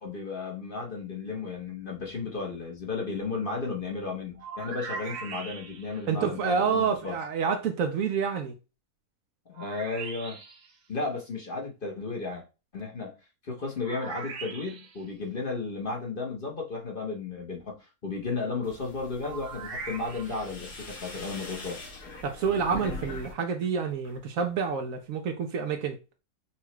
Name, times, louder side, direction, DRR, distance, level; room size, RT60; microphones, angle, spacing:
voice 1, 0.0-7.1 9.5-10.4 10.9-12.4 12.7-13.1 13.4-21.9, left 4 dB, 40° left, 1.0 m, -34 dB
sound 1, 4.4-6.0 9.5-10.7 13.8-15.1 19.2-20.5, right 5 dB, 90° right, 1.4 m, -40 dB
voice 2, 6.1-8.6 22.2-26.0, right 6 dB, 70° right, 0.9 m, -28 dB
sound 2, 18.6-23.3 23.6-24.3, left 2 dB, 90° left, 1.8 m, -42 dB
5.7 x 2.3 x 3.1 m
omnidirectional pair, 1.6 m